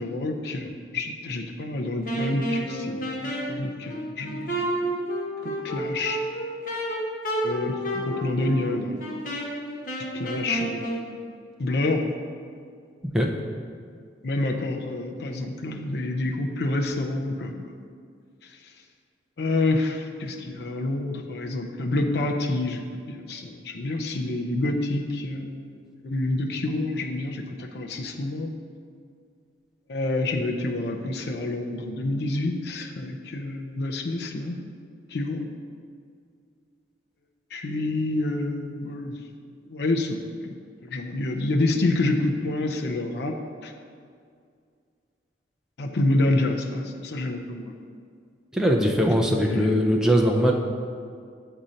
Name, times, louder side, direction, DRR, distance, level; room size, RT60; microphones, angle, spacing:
voice 1, 0.0-5.0 5.4-6.2 7.4-9.0 10.0-11.2 11.6-12.0 14.2-17.8 18.4-18.6 19.4-28.5 29.9-34.6 35.1-35.5 37.5-39.2 39.7-40.2 40.4-40.6 40.8-43.3 43.6-43.7 45.8-47.7 49.3-49.9, left 2 dB, 65° left, 2 dB, 0.5 m, -28 dB
Wind instrument woodwind instrument, 2.0-11.0, right 1 dB, 50° left, 1.0 m, -30 dB
voice 2, 48.5-50.5, equal, 5° right, 0 dB, 0.4 m, -21 dB
7.4 x 2.7 x 5.0 m, 2.2 s
head